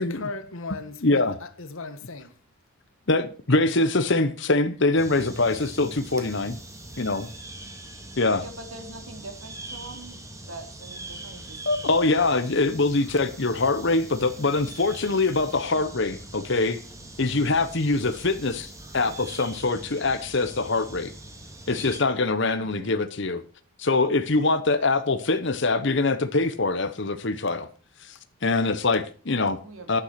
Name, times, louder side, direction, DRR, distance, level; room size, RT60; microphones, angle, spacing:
voice 1, 0.0-2.3, left 3 dB, 75° left, 1.6 m, -36 dB
voice 2, 1.0-1.4 3.1-6.6 7.0-7.2 8.2-8.4 11.7-16.8 17.2-21.1 21.7-23.4 23.8-27.7 28.1-28.2 28.4-29.6 29.9-30.0, left 3 dB, 55° left, 1.0 m, -23 dB
sound 1, 5.0-22.0, right 2 dB, 15° right, 2.1 m, -42 dB
voice 3, 8.4-10.2 10.5-11.6 22.5-23.0 29.6-30.0, right 2 dB, 75° right, 3.2 m, -43 dB
11.5 x 9.5 x 5.9 m
head